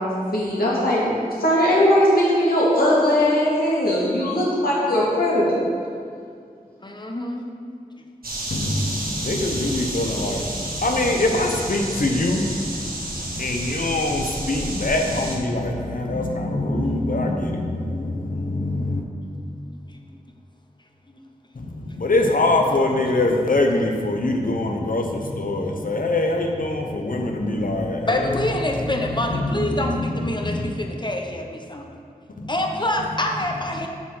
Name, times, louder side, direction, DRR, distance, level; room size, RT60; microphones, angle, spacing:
voice 1, 0.0-5.6, equal, 85° left, -7 dB, 2.3 m, -19 dB
voice 2, 6.8-7.4 8.3-8.4 19.9-20.1 21.1-21.2 28.1-31.9 32.5-33.9, left 1 dB, 30° left, 2 dB, 1.0 m, -26 dB
sound 1, 8.2-15.4, right 1 dB, 80° right, 1.5 m, -31 dB
voice 3, 8.5-19.0 21.5-30.7 32.3-32.9 33.7-33.9, left 2 dB, 65° left, 2 dB, 1.0 m, -24 dB
7.1 x 6.1 x 5.7 m, 2.2 s
wide cardioid pair, 65°, 15 cm